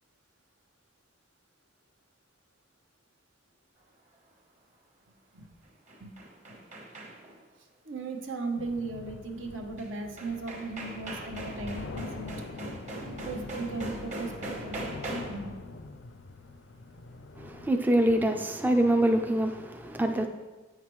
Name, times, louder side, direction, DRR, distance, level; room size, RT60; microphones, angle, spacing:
sound 1, 5.6-7.4 9.8-9.9 10.2-15.5, right 2 dB, 35° right, 1.1 m, -40 dB
voice 1, 7.8-12.3 13.0-14.8 15.3-15.7, right 3 dB, 75° right, 0.9 m, -37 dB
sound 2, 8.6-17.7, left 3 dB, 65° left, 0.4 m, -43 dB
voice 2, 17.4-20.3, right 1 dB, 10° right, 0.3 m, -25 dB
8.5 x 5.8 x 3.1 m
head